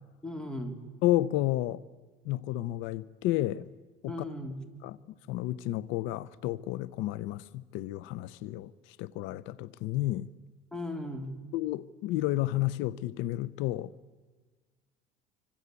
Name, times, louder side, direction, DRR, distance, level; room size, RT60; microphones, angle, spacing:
voice 1, 0.2-0.8 4.1-4.6 10.7-11.4, left 1 dB, 5° left, 3.8 m, -37 dB
voice 2, 1.0-1.8 2.2-3.7 4.0-4.3 4.8-5.0 5.3-10.3 11.5-13.9, left 15 dB, 85° left, 0.8 m, -31 dB
26.5 x 25.5 x 8.3 m
cardioid pair, 120°, 19 cm